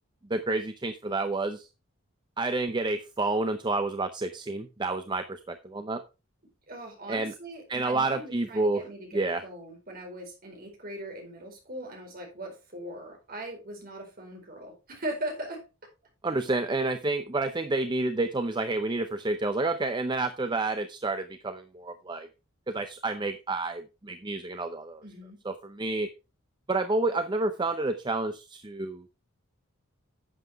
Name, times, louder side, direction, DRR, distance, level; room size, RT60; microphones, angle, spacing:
voice 1, 0.3-1.7 2.4-6.0 7.1-7.3 7.7-8.8 9.1-9.4 16.2-22.3 22.7-25.0 25.4-26.1 26.7-29.0, right 2 dB, 20° right, 9 dB, 0.6 m, -29 dB
voice 2, 6.7-15.6 25.0-25.4, right 1 dB, 45° right, 1 dB, 4.4 m, -40 dB
11.0 x 7.8 x 3.4 m, 0.29 s
head